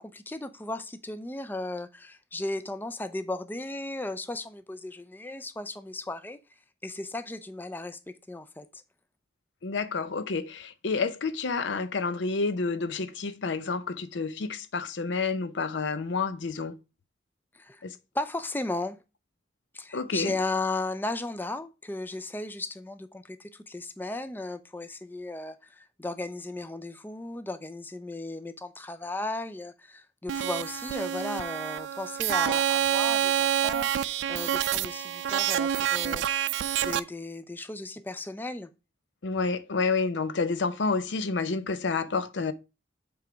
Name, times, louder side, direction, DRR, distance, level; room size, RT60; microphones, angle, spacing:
voice 1, 0.0-6.4 6.8-8.0 8.3-8.8 17.5-17.8 18.1-19.0 19.7-38.7, left 2 dB, 10° left, 0.4 m, -35 dB
voice 2, 9.6-16.7 17.8-18.0 19.9-20.4 39.2-42.5, left 4 dB, 75° left, 0.6 m, -29 dB
sound 1, 30.3-37.0, right 10 dB, 75° right, 0.4 m, -27 dB
7.8 x 3.4 x 5.0 m
head